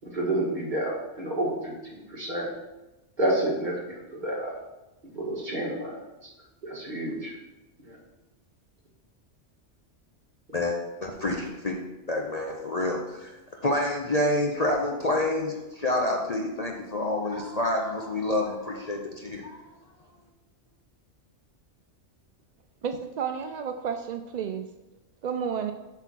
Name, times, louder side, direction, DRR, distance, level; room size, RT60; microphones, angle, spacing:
voice 1, 0.1-1.7 2.1-2.5 3.2-4.5 5.1-6.0 6.6-7.3 7.8-7.9, right 1 dB, 40° right, -4 dB, 2.2 m, -29 dB
voice 2, 10.5-11.8 12.1-13.3 13.6-19.6, left 1 dB, 40° left, 0 dB, 0.7 m, -28 dB
voice 3, 22.8-24.7 25.2-25.7, right 7 dB, 70° right, 7 dB, 0.4 m, -31 dB
7.8 x 5.9 x 4.6 m, 1.0 s
omnidirectional pair, 1.3 m